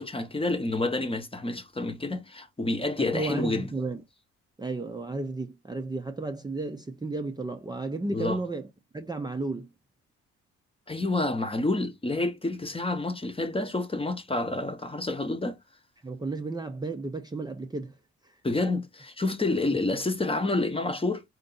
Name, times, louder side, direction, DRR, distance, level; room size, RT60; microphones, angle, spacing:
voice 1, 0.0-3.7 8.1-8.4 10.9-15.6 18.4-21.2, left 2 dB, 20° left, 1.0 m, -28 dB
voice 2, 3.0-4.0 4.6-8.7 8.9-9.7 16.0-17.9, right 3 dB, 15° right, 0.6 m, -33 dB
4.5 x 2.6 x 3.9 m
cardioid pair, 90°, 30 cm